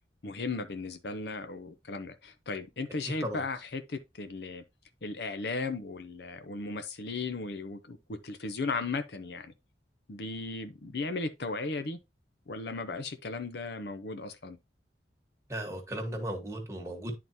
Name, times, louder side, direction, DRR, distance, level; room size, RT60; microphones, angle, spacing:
voice 1, 0.2-4.6 5.0-9.5 10.1-12.0 12.5-14.6, left 3 dB, 70° left, 0.7 m, -36 dB
voice 2, 15.5-17.1, right 1 dB, 15° right, 1.3 m, -36 dB
11.0 x 3.9 x 2.7 m
head